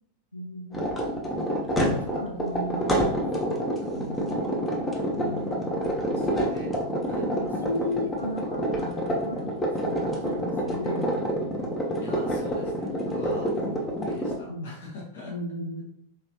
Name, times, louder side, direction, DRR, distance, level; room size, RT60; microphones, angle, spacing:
voice 1, 0.3-1.0 1.8-4.4 5.2-5.7 6.3-6.5 7.3-11.1 13.6-13.8 14.5-14.7 15.2-15.8, left 1 dB, 85° left, 2 dB, 0.3 m, -36 dB
sound 1, 0.7-14.4, equal, 15° left, 0.7 m, -28 dB
voice 2, 5.1-5.8 6.1-6.7 7.1-7.3 12.0-15.3, left 2 dB, 55° left, -2 dB, 1.1 m, -41 dB
3.0 x 3.0 x 2.8 m, 0.70 s
figure-of-eight pair, 90°, 0 cm